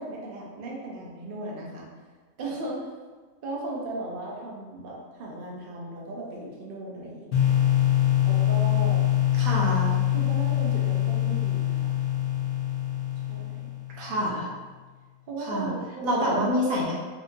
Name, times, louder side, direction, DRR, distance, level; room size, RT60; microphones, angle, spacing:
voice 1, 0.0-1.9 2.4-3.0 3.4-7.6 8.2-9.0 10.1-12.0 13.3-13.7 15.3-16.2, right 2 dB, 50° right, -3 dB, 0.7 m, -37 dB
sound 1, 7.3-14.1, left 12 dB, 75° left, 1.2 m, -24 dB
voice 2, 9.3-9.9 14.0-14.5 15.5-15.7 16.0-16.9, equal, 70° right, -4 dB, 1.2 m, -26 dB
4.3 x 2.5 x 2.6 m, 1.4 s
omnidirectional pair, 1.5 m